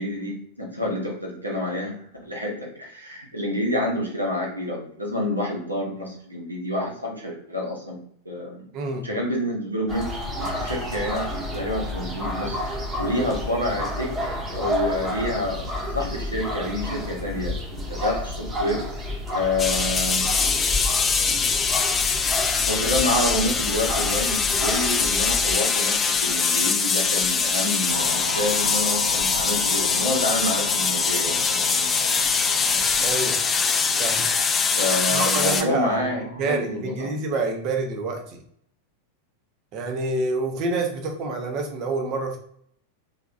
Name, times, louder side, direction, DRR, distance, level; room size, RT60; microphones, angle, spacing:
voice 1, 0.0-8.0 8.2-10.1 10.6-12.6 13.0-15.6 15.9-17.5 17.9-18.8 19.3-20.3 22.7-33.0 34.8-37.2, left 1 dB, 85° right, -2 dB, 1.4 m, -28 dB
voice 2, 8.7-9.1 33.0-33.4 34.0-34.3 35.1-38.4 39.7-42.4, right 3 dB, 40° right, 3 dB, 1.0 m, -27 dB
sound 1, 9.9-25.6, left 1 dB, 20° right, 1.3 m, -30 dB
sound 2, 19.6-35.6, left 5 dB, 20° left, 0.4 m, -23 dB
sound 3, 27.9-36.6, left 1 dB, 80° left, 0.6 m, -35 dB
3.7 x 3.5 x 2.6 m, 0.66 s
figure-of-eight pair, 90°, 0 cm